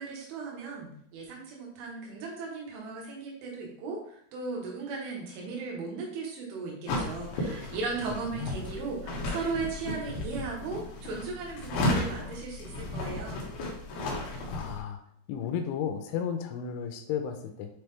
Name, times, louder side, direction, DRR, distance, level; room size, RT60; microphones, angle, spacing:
voice 1, 0.0-13.4, right 4 dB, 85° right, -2 dB, 3.8 m, -37 dB
sound 1, 6.9-14.8, left 2 dB, 70° left, 2.9 m, -34 dB
voice 2, 14.5-15.0 15.3-17.7, left 8 dB, 90° left, 6 dB, 3.1 m, -33 dB
8.2 x 3.6 x 3.4 m, 0.68 s
omnidirectional pair, 5.3 m